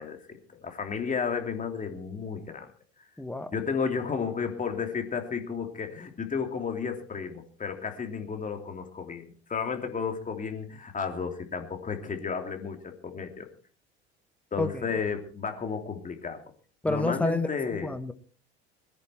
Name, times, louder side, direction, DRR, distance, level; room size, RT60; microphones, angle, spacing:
voice 1, 0.0-2.7 3.5-13.5 14.5-16.4 16.8-17.9, left 5 dB, 25° left, 5 dB, 3.1 m, -33 dB
voice 2, 3.2-3.5 14.6-14.8 16.8-18.1, left 2 dB, 5° left, 11 dB, 1.4 m, -29 dB
22.0 x 10.5 x 4.5 m, 0.42 s
figure-of-eight pair, 70°, 32 cm